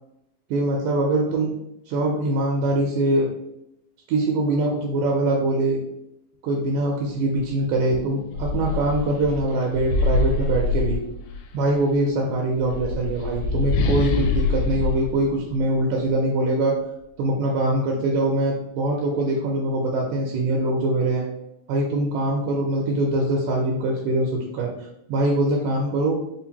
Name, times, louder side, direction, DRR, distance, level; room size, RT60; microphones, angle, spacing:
voice 1, 0.5-1.5 1.9-3.3 4.1-5.8 6.4-11.0 11.5-16.8 17.2-21.3 21.7-26.1, right 2 dB, 80° right, 0 dB, 2.0 m, -23 dB
sound 1, 7.4-7.5 7.9-11.5 12.5-16.1, left 3 dB, 90° left, 2.2 m, -25 dB
5.1 x 2.5 x 2.7 m, 0.81 s
omnidirectional pair, 3.8 m